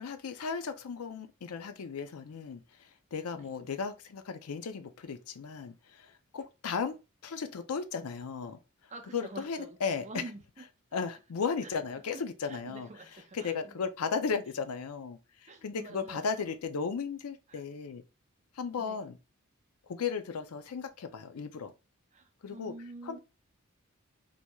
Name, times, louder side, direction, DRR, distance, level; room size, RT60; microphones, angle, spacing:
voice 1, 0.0-7.0 7.2-8.6 9.1-10.2 10.9-12.9 13.3-18.0 18.6-19.2 19.9-21.7 22.4-22.7 23.1-23.2, left 5 dB, 90° left, 0.5 m, -35 dB
voice 2, 8.9-10.4 11.6-11.7 12.1-13.8 15.5-16.3 17.5-17.6 18.8-19.0 22.1-23.2, right 2 dB, 30° right, 0.6 m, -47 dB
4.4 x 2.8 x 2.3 m
head